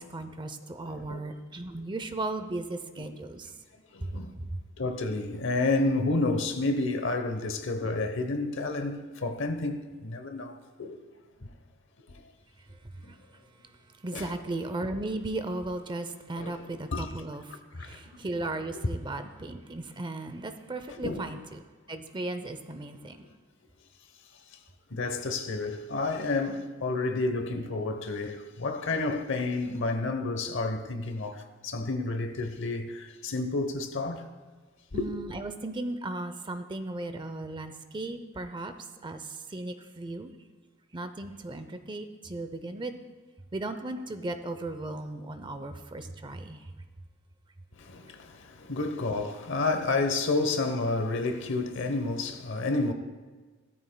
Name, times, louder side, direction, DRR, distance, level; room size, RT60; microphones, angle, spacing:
voice 1, 0.0-3.5 4.0-4.1 4.5-4.6 13.1-13.2 14.0-21.6 21.9-23.2 34.9-38.7 39.0-40.3 40.9-43.0 43.5-46.7, right 2 dB, 25° right, 0.6 m, -36 dB
voice 2, 0.9-1.2 3.0-3.1 3.9-4.3 4.8-11.0 11.4-11.5 12.1-12.2 13.0-13.1 14.1-14.3 16.3-17.1 17.7-18.2 21.0-21.3 24.9-34.3 34.9-35.1 47.8-52.9, left 3 dB, 60° left, 0.9 m, -30 dB
16.0 x 13.5 x 2.2 m
head